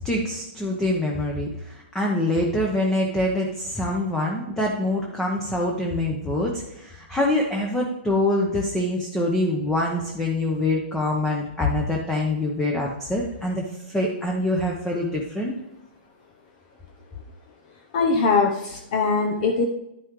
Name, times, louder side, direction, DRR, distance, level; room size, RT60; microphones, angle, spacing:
voice 1, 0.0-15.5, left 1 dB, 5° left, -1 dB, 1.0 m, -25 dB
voice 2, 17.9-19.6, left 4 dB, 45° left, 2 dB, 0.9 m, -21 dB
11.0 x 5.5 x 3.2 m, 0.86 s
hypercardioid pair, 140°, 6 cm